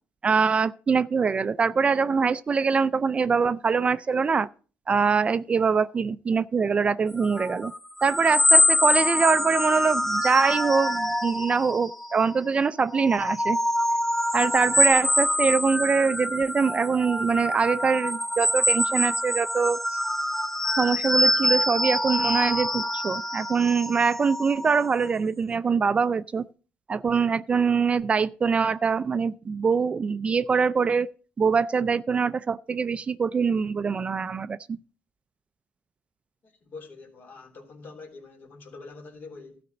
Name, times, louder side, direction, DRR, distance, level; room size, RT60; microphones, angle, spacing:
voice 1, 0.2-4.5 4.9-7.7 8.0-13.6 14.3-20.0 20.8-26.4 26.9-31.1 31.4-34.6, right 5 dB, 30° right, 0.4 m, -23 dB
sound 1, 7.2-12.4 12.8-25.1, left 1 dB, 10° left, 0.7 m, -25 dB
voice 2, 36.4-39.6, left 3 dB, 55° left, 3.1 m, -45 dB
12.5 x 5.0 x 6.9 m
cardioid pair, 105°, 4 cm